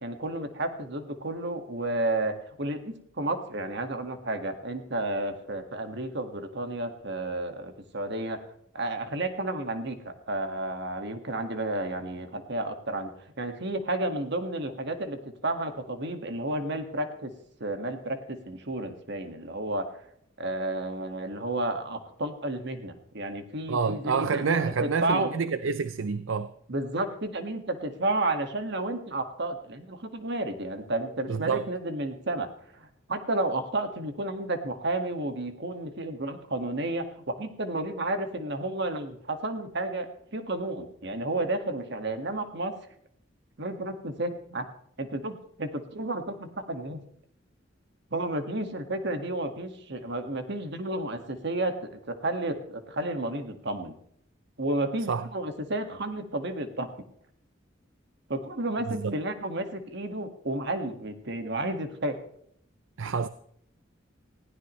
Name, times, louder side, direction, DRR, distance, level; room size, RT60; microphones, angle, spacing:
voice 1, 0.0-8.4 8.7-13.1 13.4-17.3 17.6-19.9 20.4-25.3 26.7-32.5 32.7-40.1 40.3-42.8 43.6-44.7 45.0-47.0 48.1-53.9 54.6-56.9 58.3-62.2, right 2 dB, 60° right, 1.8 m, -32 dB
voice 2, 23.7-26.5 31.3-31.6 55.1-55.3 58.9-59.1 63.0-63.3, right 5 dB, 80° right, 0.5 m, -28 dB
19.5 x 16.0 x 3.2 m
head